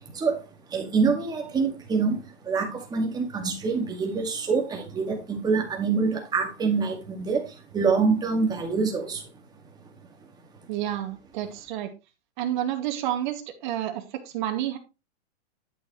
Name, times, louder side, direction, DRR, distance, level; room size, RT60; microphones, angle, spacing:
voice 1, 0.1-7.4 7.7-9.2, right 4 dB, 10° right, 2.1 m, -26 dB
voice 2, 10.7-11.9 12.4-14.8, right 12 dB, 45° right, 2.3 m, -30 dB
11.5 x 6.6 x 3.2 m
hypercardioid pair, 155°, 34 cm